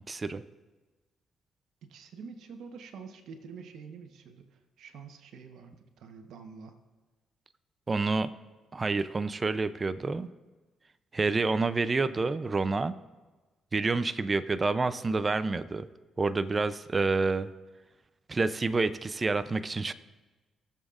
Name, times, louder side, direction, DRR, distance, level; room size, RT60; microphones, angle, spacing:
voice 1, 0.1-0.4 7.9-8.3 8.7-10.3 11.1-12.9 13.7-15.9 16.2-17.5 18.3-19.9, right 3 dB, 30° right, 12 dB, 0.5 m, -28 dB
voice 2, 1.8-6.8, right 5 dB, 75° right, 5 dB, 1.1 m, -47 dB
20.0 x 7.3 x 2.5 m, 1.2 s
cardioid pair, 90°, 0 cm